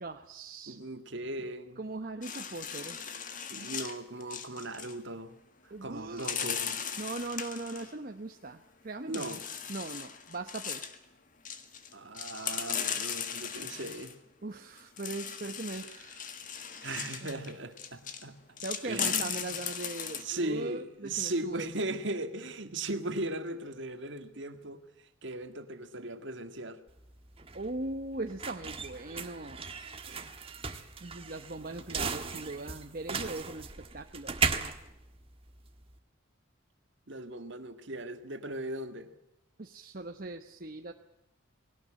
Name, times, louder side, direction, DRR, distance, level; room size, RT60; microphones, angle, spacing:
voice 1, 0.0-0.8 1.8-3.0 5.7-6.3 7.0-9.4 9.7-10.9 14.4-16.3 17.2-17.3 18.6-21.8 27.5-29.7 30.0-30.2 31.0-34.4 39.6-40.9, right 2 dB, 45° right, 1.0 m, -40 dB
voice 2, 0.7-1.8 3.5-5.4 5.8-6.8 9.1-9.4 11.9-14.1 16.8-18.4 18.8-19.6 20.2-26.8 37.1-39.1, right 2 dB, 60° right, 1.9 m, -38 dB
sound 1, 2.2-4.9 6.2-7.9 9.1-11.0 11.5-14.1 14.8-18.2 18.6-20.2, left 8 dB, 40° left, 1.7 m, -37 dB
sound 2, 26.9-36.0, right 5 dB, 25° right, 1.5 m, -37 dB
20.0 x 18.0 x 8.7 m
head